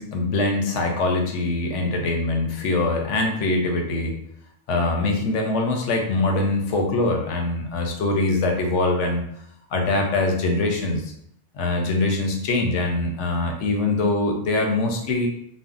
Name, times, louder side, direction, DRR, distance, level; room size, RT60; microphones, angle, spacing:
voice 1, 0.0-4.1 4.7-9.2 9.7-11.1 11.5-15.3, left 2 dB, 90° left, 2 dB, 0.9 m, -23 dB
2.6 x 2.0 x 3.7 m, 0.71 s
omnidirectional pair, 1.2 m